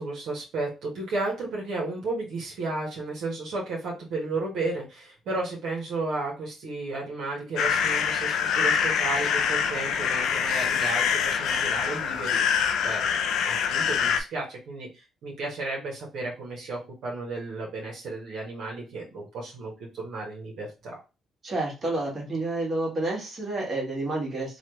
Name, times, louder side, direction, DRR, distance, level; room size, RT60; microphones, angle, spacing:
voice 1, 0.0-12.4 12.8-21.0, right 2 dB, 75° right, -3 dB, 1.2 m, -33 dB
sound 1, 7.6-14.2, left 7 dB, 80° left, 0.4 m, -25 dB
voice 2, 21.4-24.6, right 2 dB, 40° right, -2 dB, 1.6 m, -29 dB
3.1 x 2.5 x 3.0 m, 0.29 s
cardioid pair, 90°, 0 cm